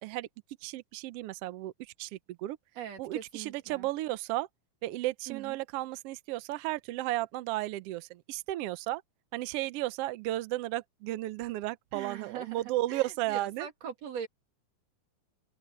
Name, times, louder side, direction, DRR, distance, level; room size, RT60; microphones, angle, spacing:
voice 1, 0.6-1.7 2.0-2.1 2.4-2.6 3.0-4.5 4.8-9.0 9.3-13.7, right 16 dB, 85° right, 1.3 m, -34 dB
voice 2, 2.7-3.9 5.3-5.6 11.9-14.3, right 8 dB, 60° right, 3.2 m, -41 dB
omnidirectional pair, 3.5 m